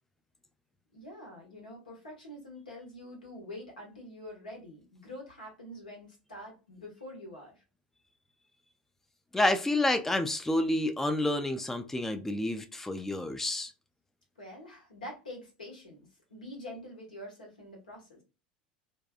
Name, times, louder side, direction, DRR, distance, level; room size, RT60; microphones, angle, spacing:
voice 1, 0.9-7.6 14.4-16.0 16.3-18.2, left 1 dB, 80° left, 1.1 m, -46 dB
voice 2, 9.3-13.7, left 1 dB, 5° left, 0.3 m, -29 dB
2.6 x 2.3 x 2.2 m
figure-of-eight pair, 75°, 4 cm